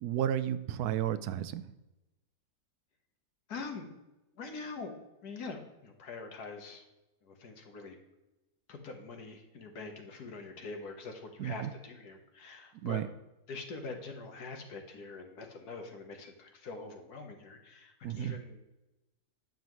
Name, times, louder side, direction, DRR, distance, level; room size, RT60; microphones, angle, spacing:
voice 1, 0.0-1.6 11.4-11.7 12.8-13.1 18.0-18.3, right 11 dB, 85° right, 13 dB, 1.1 m, -32 dB
voice 2, 3.5-3.9 4.4-4.9 5.2-6.8 7.2-8.0 8.7-13.0 13.5-18.6, left 4 dB, 85° left, 4 dB, 1.8 m, -44 dB
10.5 x 7.4 x 3.1 m, 0.98 s
omnidirectional pair, 1.6 m